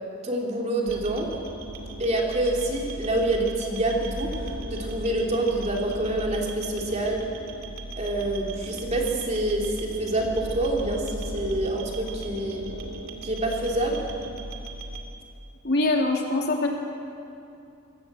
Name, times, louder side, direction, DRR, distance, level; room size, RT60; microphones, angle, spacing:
voice 1, 0.2-1.3 2.0-7.3 8.0-12.6 13.2-14.0, right 1 dB, 30° right, -1 dB, 3.3 m, -27 dB
sound 1, 0.9-15.0, right 1 dB, 80° right, 2.3 m, -36 dB
voice 2, 15.6-16.7, left 2 dB, 50° left, 0 dB, 2.8 m, -23 dB
26.0 x 17.5 x 7.7 m, 2.6 s
head